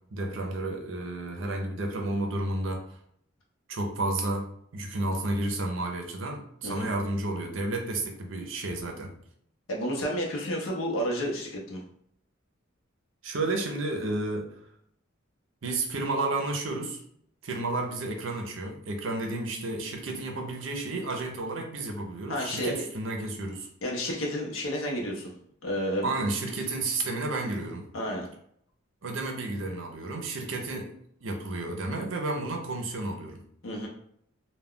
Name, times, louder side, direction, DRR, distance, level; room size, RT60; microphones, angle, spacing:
voice 1, 0.1-2.8 3.7-9.1 13.2-14.5 15.6-17.0 17.4-23.7 26.0-27.8 29.0-30.9 31.2-33.4, right 2 dB, 70° right, 3 dB, 0.6 m, -31 dB
voice 2, 9.7-11.8 22.3-22.9 23.8-25.3 25.6-26.1 27.9-28.3 33.6-33.9, equal, 80° left, -1 dB, 0.6 m, -31 dB
2.3 x 2.2 x 3.5 m, 0.68 s
head